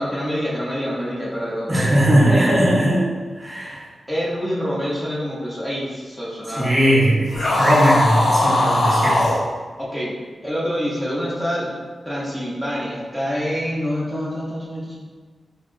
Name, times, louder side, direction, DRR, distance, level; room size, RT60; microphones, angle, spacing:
voice 1, 0.0-2.6 4.1-6.8 9.8-10.1 10.4-11.8 12.0-15.0, equal, 10° left, -7 dB, 0.6 m, -26 dB
voice 2, 1.7-3.1 3.4-3.8 6.5-9.4, right 1 dB, 25° right, -5 dB, 0.7 m, -18 dB
sound 1, 7.3-9.4, left 1 dB, 85° left, 0.8 m, -19 dB
4.4 x 2.8 x 2.5 m, 1.5 s
wide cardioid pair, 160°, 0 cm